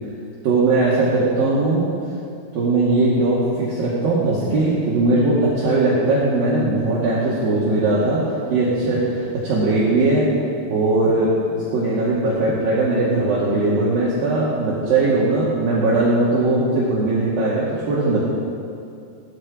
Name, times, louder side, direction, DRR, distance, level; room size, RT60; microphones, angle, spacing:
voice 1, 0.4-1.9 2.5-8.2 8.5-10.3 10.7-18.2, right 2 dB, 60° right, -8 dB, 3.6 m, -19 dB
17.5 x 13.5 x 5.0 m, 2.5 s
omnidirectional pair, 5.1 m